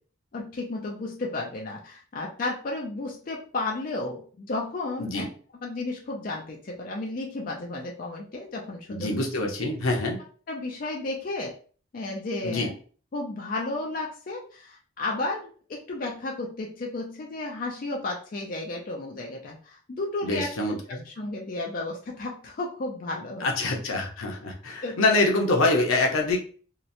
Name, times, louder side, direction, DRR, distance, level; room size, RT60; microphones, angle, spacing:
voice 1, 0.3-5.3 5.6-9.1 10.5-11.6 11.9-12.7 13.1-20.8 21.1-23.5 24.8-25.0, left 2 dB, 40° left, -1 dB, 0.4 m, -33 dB
voice 2, 5.0-5.3 8.9-10.2 12.4-12.7 20.2-21.1 23.4-26.4, left 2 dB, 85° left, 1 dB, 0.7 m, -25 dB
2.8 x 2.0 x 2.5 m, 0.42 s
head